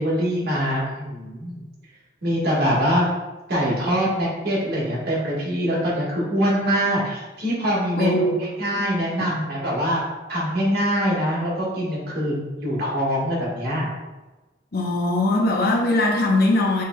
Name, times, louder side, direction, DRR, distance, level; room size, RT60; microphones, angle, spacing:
voice 1, 0.0-1.6 2.2-3.1 3.5-10.0 10.3-13.9, equal, 60° right, -6 dB, 1.4 m, -23 dB
voice 2, 8.0-8.3 8.7-8.8 14.7-16.8, left 2 dB, 55° left, -1 dB, 0.7 m, -20 dB
5.3 x 3.3 x 2.2 m, 1.1 s
head